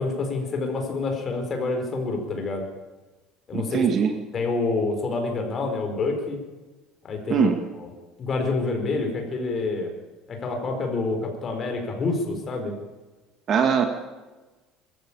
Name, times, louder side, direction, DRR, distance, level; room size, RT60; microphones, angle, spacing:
voice 1, 0.0-2.6 3.5-3.9 4.3-6.4 7.0-7.5 7.8-7.9 8.2-9.9 10.3-12.7, left 3 dB, 30° left, 4 dB, 5.0 m, -27 dB
voice 2, 3.5-4.1 7.3-7.6 13.5-13.9, right 7 dB, 40° right, 6 dB, 2.0 m, -21 dB
22.5 x 14.5 x 8.9 m, 1.2 s
cardioid pair, 145°, 0 cm